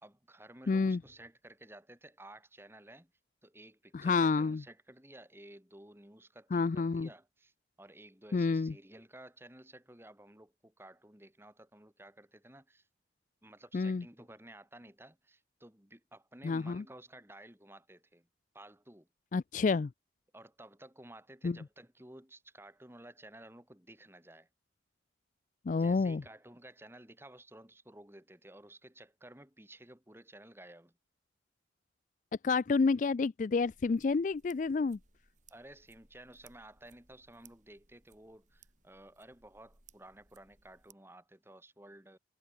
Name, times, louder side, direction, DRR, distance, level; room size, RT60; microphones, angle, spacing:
voice 1, 0.0-3.1 3.4-7.5 7.8-12.9 13.4-18.3 18.5-19.1 20.3-24.5 25.7-30.9 35.5-42.2, right 1 dB, 10° right, 2.3 m, -54 dB
voice 2, 0.7-1.0 3.9-4.6 6.5-7.1 8.3-8.7 13.7-14.0 16.4-16.8 19.3-19.9 21.4-21.6 25.7-26.2 32.4-35.0, left 4 dB, 45° left, 0.3 m, -29 dB
sound 1, 33.6-40.9, right 5 dB, 40° right, 6.2 m, -65 dB
head